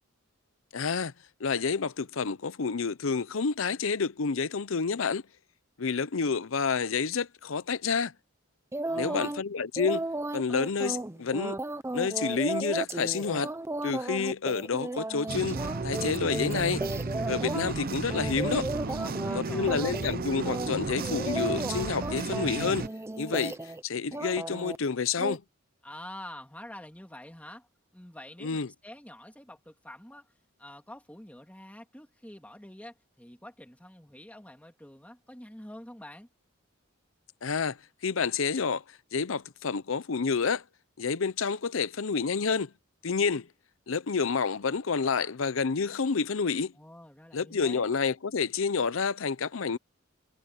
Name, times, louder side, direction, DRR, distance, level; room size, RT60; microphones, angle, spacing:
voice 1, 0.7-1.1 1.4-5.2 5.8-8.1 8.9-10.1 10.3-11.6 11.9-13.5 13.8-16.8 17.3-18.7 19.3-22.9 23.2-25.4 28.4-28.7 37.4-37.8 38.0-38.8 39.1-40.6 41.0-42.7 43.0-43.5 43.9-46.7 47.3-49.8, left 5 dB, 70° left, 0.7 m, -29 dB
sound 1, 8.7-9.4 9.8-17.7 18.1-19.4 19.7-20.2 20.5-23.8 24.1-24.8 25.2-25.4, right 2 dB, 15° right, 0.7 m, -34 dB
voice 2, 8.8-9.4 18.9-19.9 25.8-27.7 27.9-30.3 30.6-36.3 46.8-47.9, left 1 dB, 5° left, 2.7 m, -47 dB
sound 2, 15.3-22.9, right 3 dB, 45° right, 0.8 m, -33 dB
head